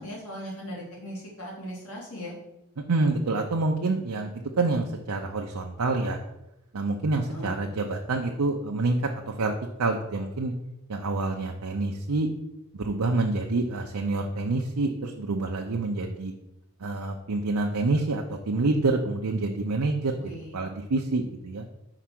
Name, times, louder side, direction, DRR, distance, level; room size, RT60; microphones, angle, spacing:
voice 1, 0.0-2.3 7.1-7.6 20.2-20.5, equal, 70° left, -4 dB, 2.6 m, -39 dB
voice 2, 2.9-4.3 4.6-6.2 6.7-9.5 9.8-10.5 10.9-12.3 12.8-16.3 16.8-21.6, right 3 dB, 85° right, 2 dB, 0.6 m, -27 dB
4.9 x 4.6 x 5.9 m, 0.88 s
head